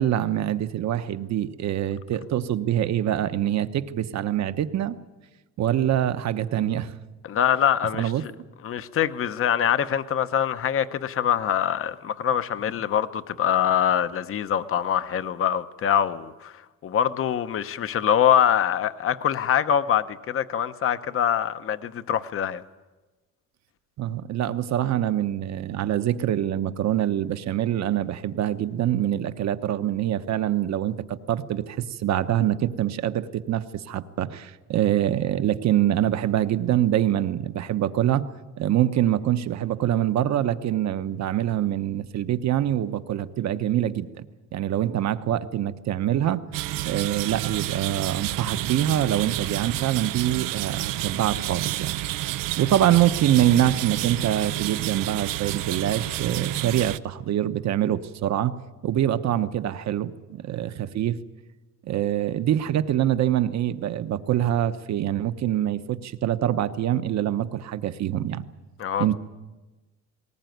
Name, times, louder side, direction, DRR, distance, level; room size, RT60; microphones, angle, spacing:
voice 1, 0.0-5.0 5.6-6.9 8.0-8.2 24.0-38.2 38.6-44.1 44.5-46.4 46.8-51.9 52.6-58.6 58.8-61.2 61.8-68.5 69.0-69.1, right 11 dB, 55° right, 1.0 m, -25 dB
voice 2, 7.2-8.3 8.6-22.6 68.8-69.1, left 9 dB, 40° left, 0.8 m, -24 dB
sound 1, 46.5-57.0, right 16 dB, 90° right, 0.6 m, -30 dB
19.5 x 19.0 x 9.3 m
cardioid pair, 145°, 32 cm